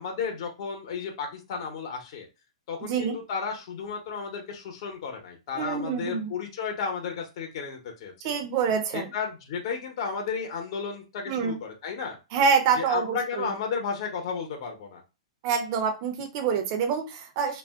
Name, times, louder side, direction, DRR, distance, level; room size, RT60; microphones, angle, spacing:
voice 1, 0.0-2.3 2.7-8.4 8.9-12.2 12.7-15.0, left 6 dB, 50° left, 2 dB, 0.8 m, -33 dB
voice 2, 5.6-6.3 8.2-9.1 11.3-11.5 12.3-13.5 15.4-17.6, right 6 dB, 35° right, 4 dB, 0.5 m, -26 dB
2.4 x 2.1 x 3.5 m, 0.28 s
hypercardioid pair, 155°, 4 cm